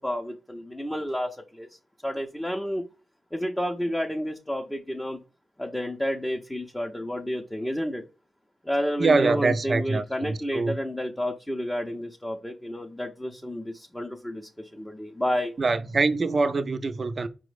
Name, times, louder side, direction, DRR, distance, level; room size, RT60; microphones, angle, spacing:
voice 1, 0.0-1.7 2.0-2.8 3.3-5.2 5.6-8.0 8.6-15.5, equal, 5° left, 0.5 m, -30 dB
voice 2, 9.0-10.8 15.6-17.3, right 3 dB, 45° right, 0.4 m, -24 dB
5.0 x 2.0 x 4.7 m
cardioid pair, 80°, 0 cm